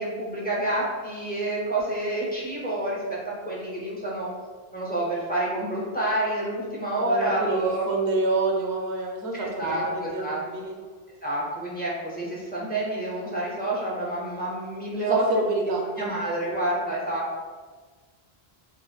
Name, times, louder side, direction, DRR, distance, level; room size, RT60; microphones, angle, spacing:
voice 1, 0.0-3.0 3.4-4.3 4.7-7.8 9.4-10.4 11.2-15.2 16.0-17.4, right 1 dB, 10° left, -6 dB, 0.6 m, -28 dB
voice 2, 7.0-10.8 14.9-16.1, right 2 dB, 80° right, 1 dB, 0.9 m, -28 dB
4.6 x 2.2 x 2.3 m, 1.4 s
omnidirectional pair, 1.1 m